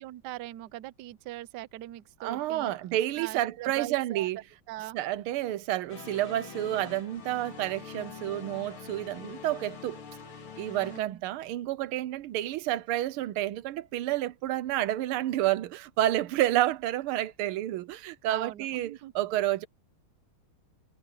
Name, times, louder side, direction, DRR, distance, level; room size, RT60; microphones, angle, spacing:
voice 1, 0.0-2.7 3.2-4.3 4.7-5.0 10.8-11.2 18.3-19.1, right 15 dB, 65° right, 1.1 m, -41 dB
voice 2, 2.2-4.4 4.9-10.0 10.6-19.7, right 14 dB, 90° right, 1.6 m, -30 dB
sound 1, 5.9-11.0, left 6 dB, 85° left, 3.3 m, -44 dB
omnidirectional pair, 2.3 m